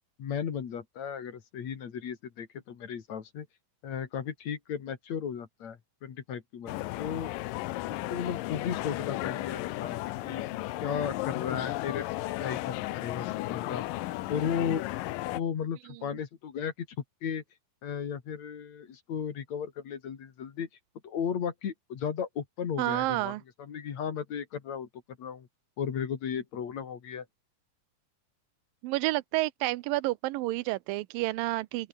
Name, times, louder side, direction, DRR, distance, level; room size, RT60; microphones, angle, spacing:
voice 1, 0.2-3.5 3.8-7.3 7.9-10.4 10.8-12.1 12.4-13.8 14.3-14.8 15.3-16.9 17.2-17.4 17.8-20.7 21.0-24.9 25.2-25.5 25.8-27.3, left 7 dB, 55° left, 3.3 m, -35 dB
sound 1, 6.7-15.4, left 18 dB, 80° left, 2.4 m, -34 dB
voice 2, 22.8-23.4 28.8-31.9, right 19 dB, 90° right, 2.5 m, -29 dB
open air
omnidirectional pair, 3.9 m